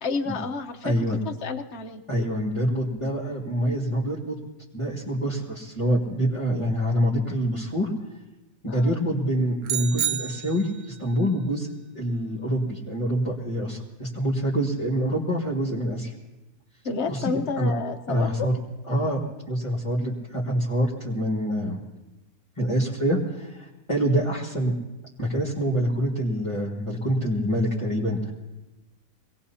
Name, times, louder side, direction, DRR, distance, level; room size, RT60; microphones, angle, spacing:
voice 1, 0.0-0.9 1.2-2.0 8.7-9.0 16.8-18.5, left 4 dB, 50° left, 5 dB, 1.2 m, -30 dB
voice 2, 0.8-1.2 2.1-4.4 4.7-7.9 8.6-11.7 11.9-16.1 17.1-17.7 18.1-18.6 18.9-19.2 19.5-21.8 22.6-24.7 25.2-28.3, equal, 20° left, -5 dB, 2.0 m, -26 dB
sound 1, 9.6-11.0, right 10 dB, 75° right, 1.2 m, -29 dB
25.0 x 18.5 x 2.8 m, 1.0 s
omnidirectional pair, 1.6 m